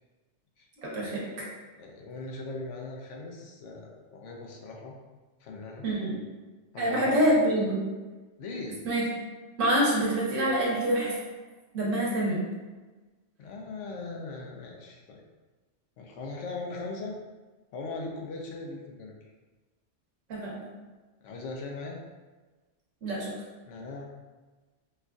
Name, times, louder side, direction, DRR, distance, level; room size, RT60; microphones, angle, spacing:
voice 1, 0.8-1.3 5.8-6.2 6.8-7.8 8.8-9.0 9.6-11.1 11.7-12.4 20.3-20.5 23.0-23.3, right 1 dB, 80° right, -5 dB, 1.3 m, -26 dB
voice 2, 1.8-4.9 5.4-5.8 6.7-7.2 8.4-8.8 13.4-15.2 16.0-17.1 17.7-19.1 21.2-22.0 23.7-24.1, left 3 dB, 75° left, 0 dB, 0.9 m, -39 dB
4.5 x 2.5 x 2.3 m, 1.3 s
omnidirectional pair, 1.3 m